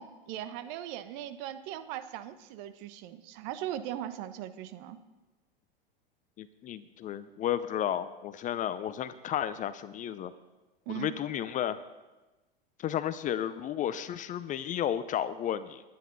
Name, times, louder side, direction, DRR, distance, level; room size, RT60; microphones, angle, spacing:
voice 1, 0.0-5.0 10.9-11.1, right 11 dB, 50° right, 11 dB, 1.1 m, -39 dB
voice 2, 6.4-10.3 10.9-11.8 12.8-15.8, left 10 dB, 25° left, 14 dB, 0.5 m, -33 dB
20.5 x 9.5 x 4.0 m, 1.1 s
hypercardioid pair, 105°, 29 cm